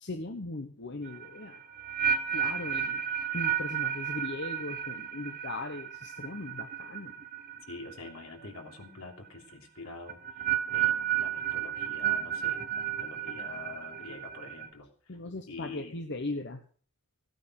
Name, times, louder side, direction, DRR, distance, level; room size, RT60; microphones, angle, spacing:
voice 1, 0.0-1.7 2.3-3.0 3.3-7.1 15.1-16.6, left 2 dB, 55° left, 5 dB, 1.1 m, -38 dB
sound 1, 1.1-8.2 8.4-8.9 10.1-14.7, right 9 dB, 40° right, 1.1 m, -32 dB
voice 2, 7.7-15.2 15.5-16.0, left 3 dB, 75° left, 3 dB, 3.2 m, -46 dB
15.5 x 9.3 x 6.3 m, 0.44 s
head